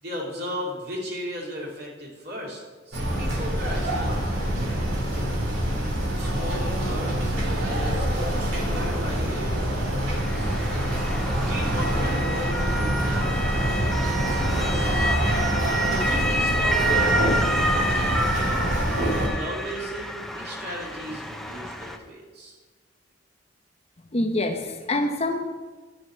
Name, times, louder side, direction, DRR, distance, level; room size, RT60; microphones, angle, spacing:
voice 1, 0.0-5.3 6.1-10.6 11.4-15.1 15.9-18.7 19.0-22.6, equal, 55° right, -2 dB, 2.6 m, -37 dB
sound 1, 2.9-19.3, right 1 dB, 85° right, 2.6 m, -25 dB
Motor vehicle (road) / Siren, 10.1-22.0, equal, ahead, 0.6 m, -29 dB
voice 2, 24.1-25.5, left 2 dB, 35° left, 5 dB, 0.8 m, -25 dB
10.5 x 4.7 x 7.8 m, 1.3 s
head